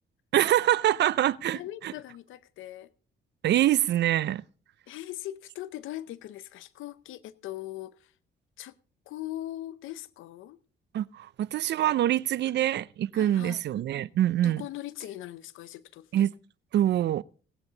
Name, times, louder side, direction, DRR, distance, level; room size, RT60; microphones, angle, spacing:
voice 1, 0.3-1.9 3.4-4.4 10.9-14.6 16.1-16.3 16.7-17.2, right 12 dB, 60° right, 0.5 m, -25 dB
voice 2, 1.5-2.9 4.9-8.1 8.6-8.7 9.1-10.6 12.6-12.7 13.1-13.6 14.4-16.3, left 14 dB, 85° left, 0.7 m, -40 dB
18.0 x 8.9 x 3.9 m
cardioid pair, 90°, 20 cm